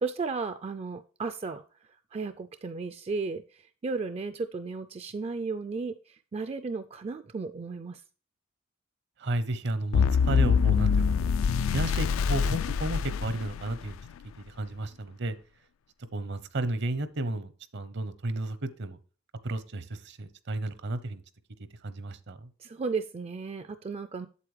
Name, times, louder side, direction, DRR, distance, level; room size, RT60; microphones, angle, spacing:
voice 1, 0.0-1.6 2.1-8.0 22.6-24.3, right 4 dB, 30° right, 10 dB, 0.3 m, -34 dB
voice 2, 9.2-11.3 11.7-14.0 14.4-15.4 16.1-19.0 19.4-21.2 21.8-22.5, right 2 dB, 60° right, 13 dB, 0.8 m, -33 dB
sound 1, 9.9-14.1, left 6 dB, 75° left, 0.3 m, -25 dB
8.3 x 7.6 x 3.2 m, 0.37 s
head